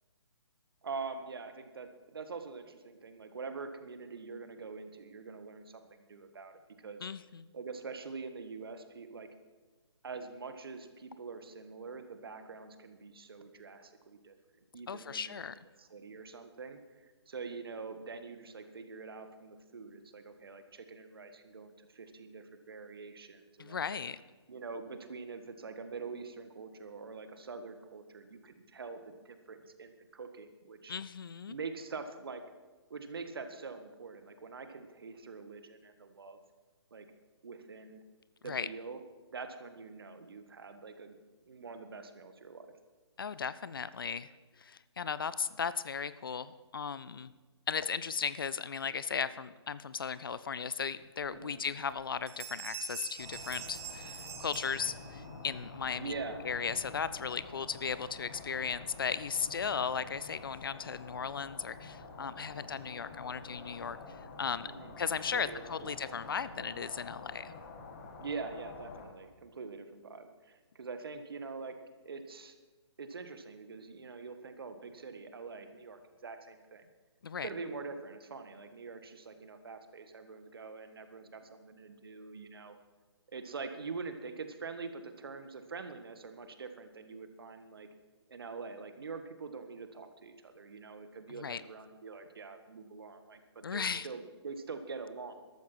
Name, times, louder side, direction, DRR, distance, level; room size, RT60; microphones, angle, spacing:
voice 1, 0.8-7.1 7.5-9.3 10.0-14.3 14.7-15.4 15.8-24.0 24.5-31.0 31.5-32.4 32.9-36.4 36.9-37.1 37.4-38.0 38.4-39.0 39.3-41.2 41.4-42.8 51.3-51.6 56.0-56.4 64.6-65.0 65.3-65.6 66.0-66.2 66.5-66.8 68.2-71.8 72.0-72.5 73.0-76.9 77.4-82.8 83.3-87.9 88.3-95.3, right 4 dB, 55° right, 9 dB, 1.8 m, -44 dB
voice 2, 7.0-7.5 14.9-15.6 23.6-24.2 30.9-31.5 38.5-38.7 43.2-44.3 44.6-47.3 47.7-56.1 56.4-64.0 64.4-64.7 65.0-67.5 77.2-77.5 91.4-91.6 93.6-94.1, left 6 dB, 50° left, 16 dB, 0.7 m, -36 dB
sound 1, 51.2-51.3 51.8-52.0 52.3-55.4, right 8 dB, 30° right, 1.3 m, -45 dB
sound 2, 53.2-69.1, left 3 dB, 30° left, 2.2 m, -48 dB
14.0 x 13.0 x 6.2 m, 1.3 s
figure-of-eight pair, 140°, 15 cm